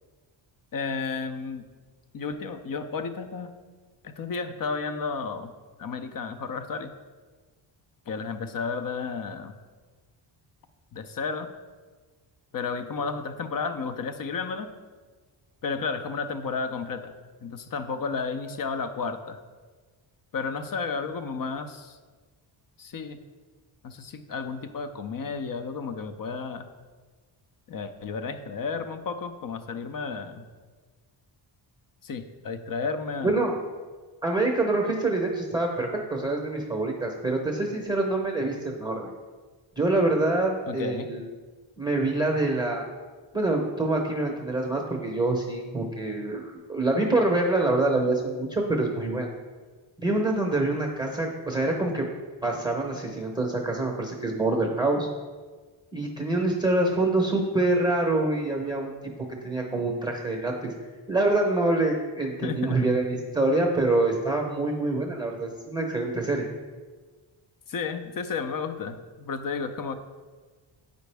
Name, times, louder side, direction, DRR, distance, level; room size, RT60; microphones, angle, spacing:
voice 1, 0.7-1.7 2.1-3.5 4.0-5.5 5.8-6.9 8.1-9.5 10.9-11.5 12.5-14.7 15.6-17.1 17.4-19.4 20.3-22.0 22.8-23.2 23.8-26.7 27.7-30.5 32.0-33.4 40.7-41.1 62.4-62.8 67.7-69.9, left 5 dB, 45° left, 9 dB, 0.6 m, -32 dB
voice 2, 34.2-39.1 39.8-41.3 41.8-42.9 43.3-49.3 50.0-52.1 52.4-55.1 55.9-58.9 59.4-60.7 61.1-66.5, right 2 dB, 10° right, 0 dB, 0.8 m, -26 dB
8.1 x 5.2 x 3.4 m, 1.4 s
cardioid pair, 85°, 49 cm